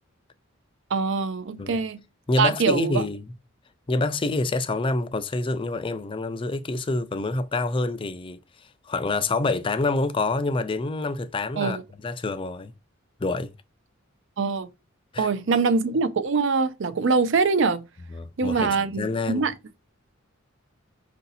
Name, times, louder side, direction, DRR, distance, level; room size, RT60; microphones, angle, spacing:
voice 1, 0.9-2.0 2.4-3.0 11.6-11.8 14.4-14.7 15.2-17.8 18.4-19.5, right 4 dB, 65° right, 0.5 m, -23 dB
voice 2, 2.3-3.3 3.9-8.4 8.9-11.8 12.0-12.7 13.2-13.5 15.1-15.3 18.1-19.5, left 2 dB, 25° left, 0.4 m, -27 dB
4.8 x 2.7 x 4.0 m
head